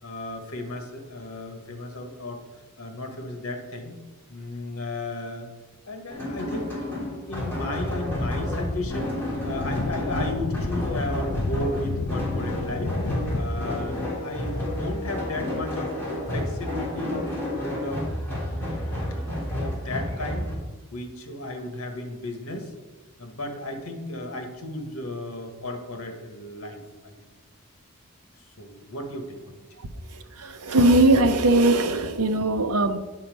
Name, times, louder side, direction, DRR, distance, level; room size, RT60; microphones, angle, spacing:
voice 1, 0.0-2.4 2.8-4.0 4.3-5.5 5.9-9.2 9.4-12.9 13.3-15.9 16.3-18.1 18.4-20.5 20.9-22.7 23.2-27.1 28.6-29.6, left 1 dB, 70° left, 1.6 m, -34 dB
sound 1, 6.1-20.5, left 1 dB, 10° left, 3.5 m, -31 dB
sound 2, 8.0-14.0, left 3 dB, 55° left, 0.5 m, -31 dB
Wind instrument woodwind instrument, 12.4-17.0, left 3 dB, 25° left, 1.7 m, -39 dB
voice 2, 30.4-33.0, right 2 dB, 90° right, 0.8 m, -20 dB
10.5 x 5.7 x 5.4 m
head